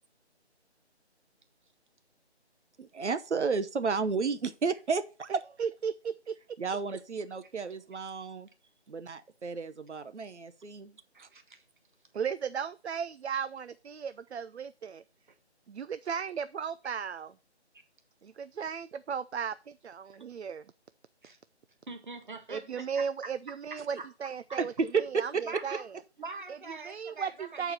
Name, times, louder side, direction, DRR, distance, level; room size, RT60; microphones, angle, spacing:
voice 1, 2.8-5.3 6.6-8.5 8.9-11.3 24.6-24.7 24.9-25.4, right 5 dB, 90° right, 0.9 m, -32 dB
voice 2, 5.3-6.4 12.1-15.0 15.7-17.3 18.2-20.6 22.5-25.9 26.5-27.7, right 7 dB, 70° right, 0.5 m, -36 dB
voice 3, 11.1-11.6 21.2-21.4 21.9-23.3 23.7-24.1 24.5-24.6 25.4-25.8 26.2-27.7, right 3 dB, 45° right, 1.4 m, -43 dB
7.4 x 4.8 x 6.7 m
figure-of-eight pair, 170°, 34 cm